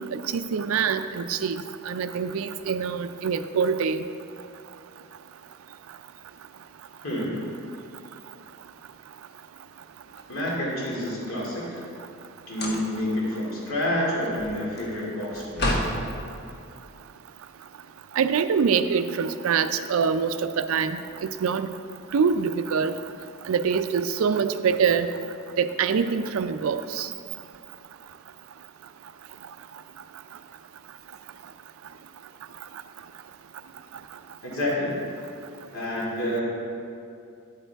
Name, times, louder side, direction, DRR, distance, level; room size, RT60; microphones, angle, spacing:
voice 1, 0.1-4.0 18.2-21.7 22.1-22.9 23.5-25.1 25.6-27.1, right 6 dB, 70° right, 11 dB, 0.4 m, -25 dB
voice 2, 7.0-7.5 10.3-11.8 12.5-15.8 34.4-34.9 35.7-36.4, left 1 dB, 70° left, -5 dB, 2.4 m, -28 dB
sound 1, 10.1-11.2 12.5-13.1 13.5-16.0, left 1 dB, 50° left, 1.1 m, -31 dB
9.9 x 8.4 x 3.4 m, 2.5 s
head